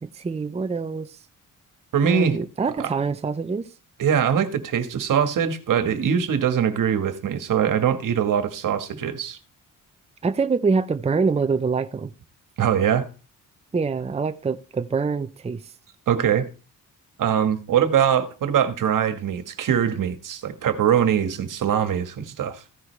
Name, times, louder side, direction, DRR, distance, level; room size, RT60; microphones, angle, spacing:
voice 1, 0.0-1.2 2.0-3.7 10.2-12.1 13.7-15.7, right 4 dB, 20° right, 0.6 m, -25 dB
voice 2, 1.9-2.4 2.8-2.9 4.0-9.4 12.6-13.0 16.1-16.5 17.2-22.6, right 8 dB, 70° right, 1.6 m, -22 dB
15.0 x 9.7 x 3.3 m
cardioid pair, 105°, 33 cm